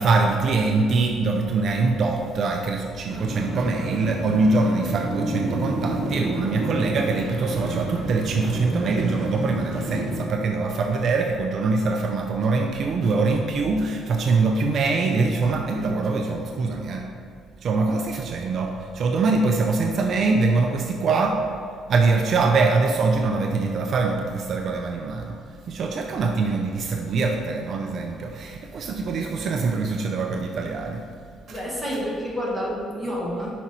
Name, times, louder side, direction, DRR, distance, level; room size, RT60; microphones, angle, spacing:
voice 1, 0.0-17.1 17.6-21.4 21.9-25.4 25.7-31.1 31.5-31.6, right 3 dB, 50° right, 3 dB, 0.5 m, -23 dB
sound 1, 3.1-10.2, right 1 dB, 70° right, 1.0 m, -29 dB
voice 2, 31.5-33.5, equal, 5° left, -5 dB, 1.7 m, -29 dB
5.9 x 5.0 x 4.2 m, 2.2 s
cardioid pair, 130°, 0 cm